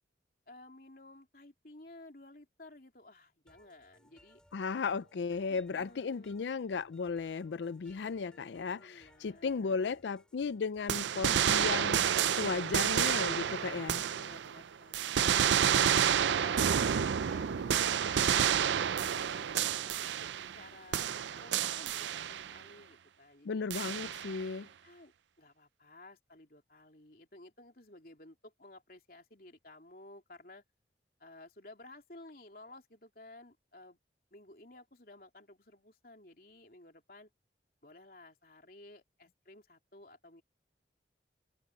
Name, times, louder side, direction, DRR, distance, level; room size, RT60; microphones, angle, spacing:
voice 1, 0.5-4.4 5.5-6.4 8.8-10.0 14.1-15.7 16.2-18.5 18.8-20.3 20.6-23.7 24.8-30.6 31.2-34.0 34.3-37.3 37.8-40.4, left 2 dB, 55° left, 3.5 m, -55 dB
sound 1, 3.5-10.9, equal, 5° left, 5.5 m, -66 dB
voice 2, 4.5-14.0 23.4-24.7, left 5 dB, 85° left, 0.4 m, -35 dB
sound 2, 10.9-14.6 14.9-20.7 20.9-22.6 23.7-24.4, right 8 dB, 90° right, 0.5 m, -30 dB
open air
head